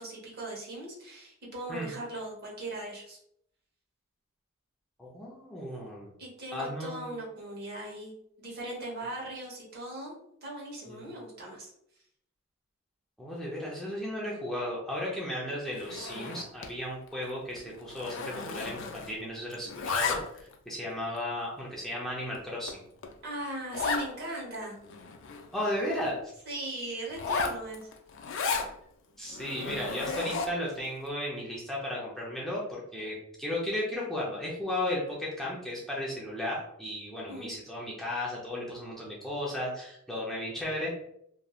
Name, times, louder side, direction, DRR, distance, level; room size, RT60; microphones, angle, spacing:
voice 1, 0.0-3.2 6.2-8.1 8.4-10.1 10.4-11.7 23.2-24.8 26.5-27.9 37.3-37.5, right 1 dB, 50° right, -3 dB, 1.1 m, -39 dB
voice 2, 5.0-6.1 6.5-7.1 10.9-11.1 13.2-22.8 25.5-26.3 29.2-40.9, left 1 dB, ahead, -5 dB, 0.5 m, -35 dB
Zipper (clothing), 15.8-16.8 17.1-17.3 17.6-19.3 19.5-20.5 21.1-21.2 21.8-21.9 22.3-22.4 22.7-22.8 23.0-23.1 23.7-24.1 24.5-24.6 24.8-26.1 27.1-28.7 29.3-30.7, left 4 dB, 65° left, 0.4 m, -34 dB
3.0 x 2.5 x 2.3 m, 0.72 s
head